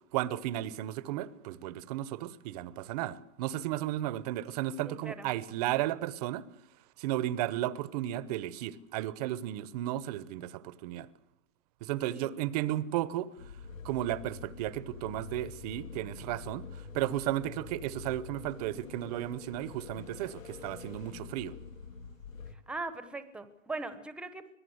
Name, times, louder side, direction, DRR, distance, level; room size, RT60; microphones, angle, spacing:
voice 1, 0.1-6.4 7.0-11.1 11.8-13.3 13.8-16.7 16.9-21.6, right 14 dB, 30° right, 0.9 m, -34 dB
voice 2, 4.8-5.3 12.1-12.4 22.7-24.5, right 3 dB, 5° right, 1.0 m, -40 dB
sound 1, 13.4-22.6, left 5 dB, 90° left, 2.1 m, -46 dB
25.5 x 17.5 x 7.9 m
hypercardioid pair, 150°, 39 cm